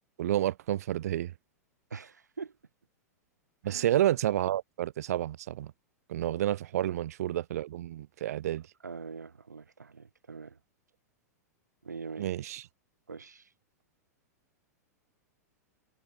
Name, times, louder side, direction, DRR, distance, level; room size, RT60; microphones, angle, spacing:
voice 1, 0.2-1.3 3.6-5.7 6.1-8.7 12.2-12.6, right 12 dB, 65° right, 2.0 m, -30 dB
voice 2, 1.9-2.5 3.6-3.9 6.9-7.0 8.8-10.6 11.8-12.3 13.1-13.5, right 5 dB, 85° right, 6.5 m, -43 dB
hypercardioid pair, 100°, 9 cm